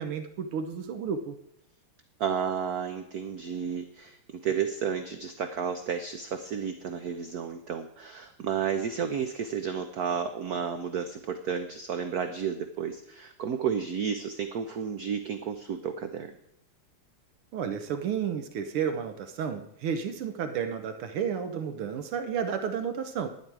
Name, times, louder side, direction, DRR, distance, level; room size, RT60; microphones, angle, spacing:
voice 1, 0.0-1.4 17.5-23.3, right 7 dB, 80° right, 8 dB, 1.8 m, -32 dB
voice 2, 2.2-16.3, right 7 dB, 60° right, 8 dB, 1.0 m, -32 dB
11.5 x 10.5 x 4.7 m, 0.79 s
omnidirectional pair, 2.4 m